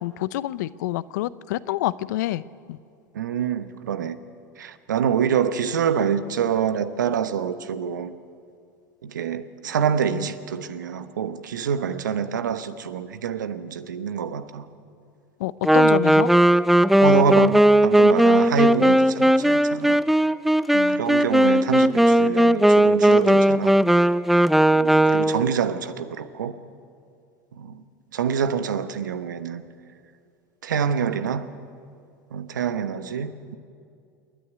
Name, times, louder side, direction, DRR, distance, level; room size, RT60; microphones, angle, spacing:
voice 1, 0.0-2.4 2.7-2.8 15.4-16.3 20.7-21.0, left 16 dB, 75° left, 0.6 m, -27 dB
voice 2, 3.1-4.2 4.6-8.1 9.0-14.7 15.9-16.3 17.0-20.0 20.9-23.8 24.7-26.6 27.5-27.8 28.1-29.6 30.6-31.5 32.3-33.6, right 7 dB, 90° right, 1.0 m, -26 dB
Wind instrument woodwind instrument, 15.6-25.5, right 1 dB, ahead, 0.5 m, -17 dB
28.0 x 10.0 x 9.4 m
hypercardioid pair, 90°, 10 cm